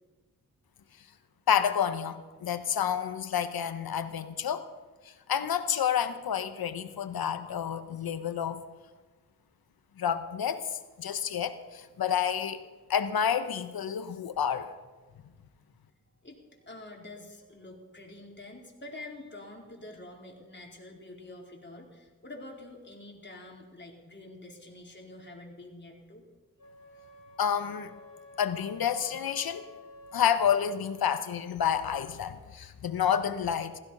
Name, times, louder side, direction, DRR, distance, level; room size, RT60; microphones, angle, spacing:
voice 1, 1.5-4.7 5.0-8.6 10.0-12.6 12.9-14.7 27.4-27.9 28.4-29.6 30.1-33.8, left 8 dB, 70° left, 11 dB, 1.2 m, -29 dB
voice 2, 16.2-26.2, left 2 dB, 30° left, 0 dB, 4.2 m, -47 dB
Wind instrument woodwind instrument, 26.6-31.1, left 2 dB, 50° left, 3.1 m, -51 dB
16.0 x 14.5 x 5.5 m, 1.3 s
cardioid pair, 55°, 38 cm